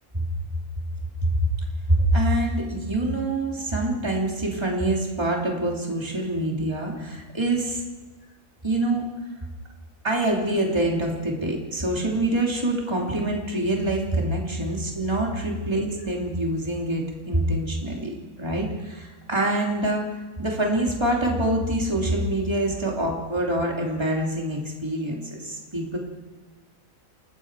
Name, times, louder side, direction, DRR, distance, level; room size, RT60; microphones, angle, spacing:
voice 1, 1.9-7.8 8.6-9.1 10.0-26.0, right 1 dB, 20° right, -1 dB, 3.1 m, -25 dB
29.5 x 19.5 x 4.8 m, 1.2 s
omnidirectional pair, 1.4 m